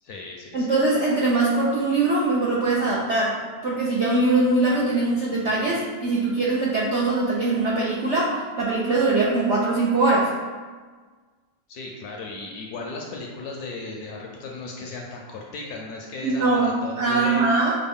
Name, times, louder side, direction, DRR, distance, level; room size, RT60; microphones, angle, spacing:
voice 1, 0.0-0.8 11.7-17.7, left 3 dB, 70° left, 0 dB, 1.0 m, -36 dB
voice 2, 0.5-3.4 3.6-10.3 16.2-17.7, right 3 dB, 70° right, -5 dB, 0.6 m, -22 dB
6.2 x 2.2 x 3.5 m, 1.5 s
omnidirectional pair, 2.0 m